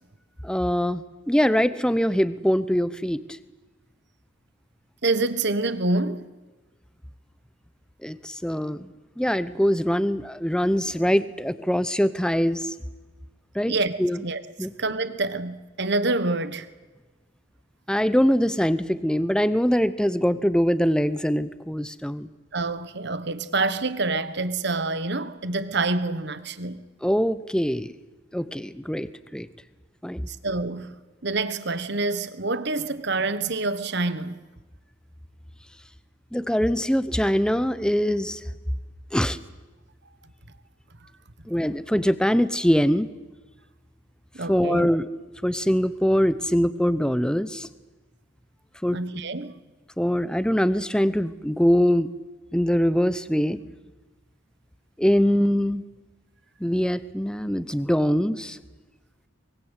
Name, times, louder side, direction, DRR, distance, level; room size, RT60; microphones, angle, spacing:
voice 1, 0.4-3.2 8.0-8.9 9.2-12.7 13.5-13.7 14.0-14.2 14.6-14.7 17.9-22.3 27.0-27.9 28.3-29.5 30.0-30.3 36.3-38.4 39.1-39.4 41.5-43.1 44.5-45.1 45.4-47.7 48.8-49.0 50.0-52.1 52.5-53.6 55.0-55.8 56.6-58.6, equal, 5° left, 0.8 m, -23 dB
voice 2, 5.0-6.3 13.6-13.9 14.2-14.4 14.8-16.7 22.5-26.8 30.3-30.9 31.2-34.4 44.3-44.9 48.9-49.5, right 3 dB, 55° right, 1.4 m, -27 dB
24.0 x 22.5 x 8.3 m
head